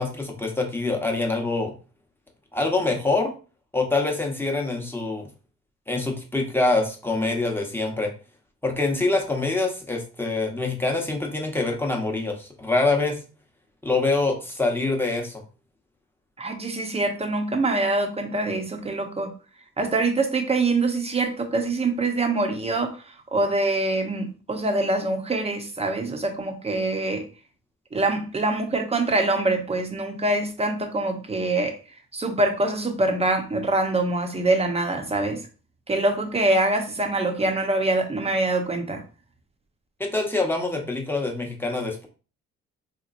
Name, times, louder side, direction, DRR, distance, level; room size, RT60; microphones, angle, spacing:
voice 1, 0.0-1.7 2.5-3.3 3.7-5.3 5.9-8.1 8.6-13.2 13.8-15.4 40.0-42.1, left 3 dB, 5° left, 0.9 m, -25 dB
voice 2, 16.4-19.3 19.8-23.0 23.3-27.2 27.9-31.8 32.1-35.4 35.9-39.0, right 2 dB, 20° right, 0.8 m, -24 dB
3.6 x 3.0 x 2.5 m
cardioid pair, 90°, 30 cm